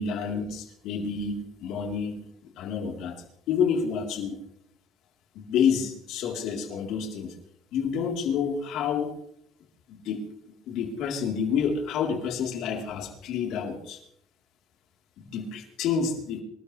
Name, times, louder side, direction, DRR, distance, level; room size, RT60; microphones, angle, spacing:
voice 1, 0.0-2.2 2.6-4.4 5.3-7.3 7.7-9.1 9.9-10.3 10.7-14.0 15.2-16.4, left 6 dB, 70° left, 1 dB, 4.0 m, -29 dB
26.5 x 13.0 x 3.4 m, 0.73 s
cardioid pair, 120°, 0 cm